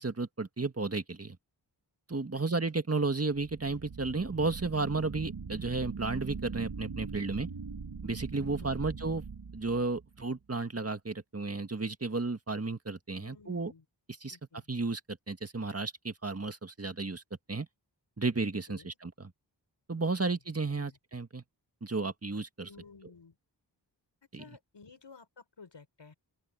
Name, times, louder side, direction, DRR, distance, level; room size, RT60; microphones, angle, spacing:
voice 1, 0.0-1.4 2.1-7.5 8.0-9.2 9.5-13.7 14.2-14.4 14.7-17.2 17.5-17.7 18.2-19.3 19.9-21.4 21.8-22.7 24.3-24.4, right 3 dB, 35° right, 1.8 m, -33 dB
sound 1, 3.5-10.3, right 5 dB, 65° right, 2.1 m, -41 dB
voice 2, 13.2-13.8 14.3-14.6 18.7-19.0 19.9-20.4 20.7-21.0 22.6-23.4 24.3-26.1, left 5 dB, 80° left, 6.5 m, -54 dB
open air
wide cardioid pair, 55°, 43 cm